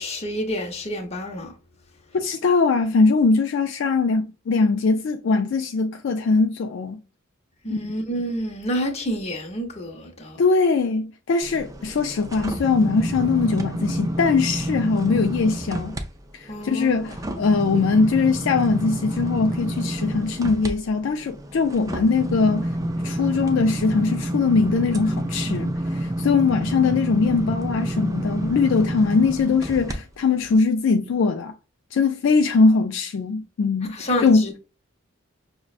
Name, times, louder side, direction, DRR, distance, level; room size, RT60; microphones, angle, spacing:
voice 1, 0.0-1.5 7.6-10.4 16.5-17.1 33.9-34.6, equal, 30° left, 0.8 m, -28 dB
voice 2, 2.1-7.0 7.7-7.8 10.4-16.0 16.3-22.7 23.0-31.5 31.9-34.5, left 4 dB, 65° left, 0.3 m, -21 dB
sound 1, 11.4-16.0 16.4-30.0 30.4-30.6, right 1 dB, 15° right, 0.3 m, -28 dB
6.0 x 2.1 x 2.4 m
head